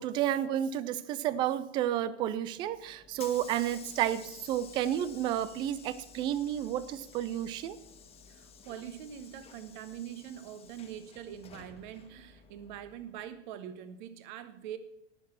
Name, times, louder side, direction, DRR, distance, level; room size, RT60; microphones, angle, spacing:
voice 1, 0.0-7.8, right 11 dB, 15° right, 17 dB, 0.4 m, -31 dB
Hiss / Sliding door, 2.5-13.3, left 6 dB, 15° left, 1.6 m, -53 dB
voice 2, 8.3-14.8, right 10 dB, 40° right, 12 dB, 1.4 m, -44 dB
18.5 x 7.7 x 5.8 m, 0.84 s
figure-of-eight pair, 100°, 37 cm